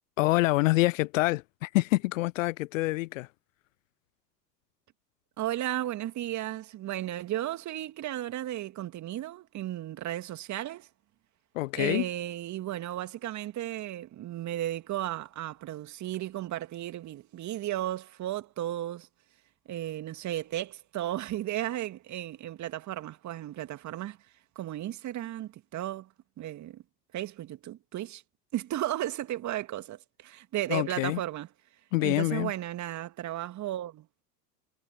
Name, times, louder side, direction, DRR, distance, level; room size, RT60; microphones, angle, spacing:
voice 1, 0.2-3.3 11.6-12.0 30.7-31.2 31.9-32.5, left 20 dB, 55° left, 0.6 m, -26 dB
voice 2, 5.4-10.9 11.7-19.1 19.7-24.2 24.6-26.8 27.1-28.2 28.5-31.5 32.0-34.1, right 13 dB, 35° right, 2.4 m, -34 dB
figure-of-eight pair, 85°, 49 cm